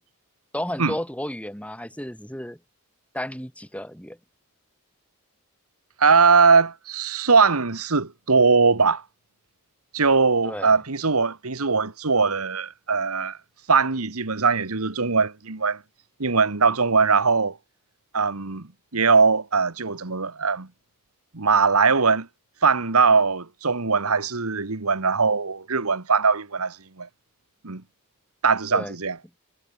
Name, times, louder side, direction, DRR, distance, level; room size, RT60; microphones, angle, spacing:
voice 1, 0.5-2.6 3.1-4.2 10.4-10.7 28.7-28.9, left 1 dB, 5° left, 5.7 m, -32 dB
voice 2, 6.0-9.0 9.9-13.4 13.7-15.8 16.2-17.6 18.1-18.7 18.9-20.7 21.3-22.3 22.6-27.1 27.6-27.8 28.4-29.2, right 4 dB, 80° right, 1.6 m, -20 dB
head